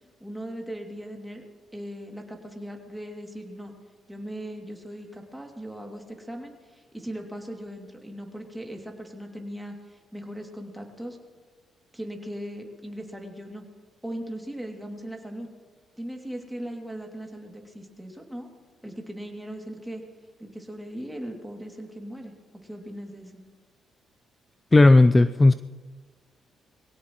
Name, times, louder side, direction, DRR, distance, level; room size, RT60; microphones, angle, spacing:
voice 1, 0.2-1.4 1.7-3.7 4.1-11.2 11.9-13.6 14.0-15.5 16.0-18.5 18.8-20.0 20.4-22.3 22.6-23.4, equal, 5° right, 1 dB, 2.5 m, -38 dB
voice 2, 24.7-25.5, left 2 dB, 20° left, 12 dB, 0.4 m, -15 dB
22.0 x 17.0 x 3.1 m, 1.4 s
cardioid pair, 90°, 0 cm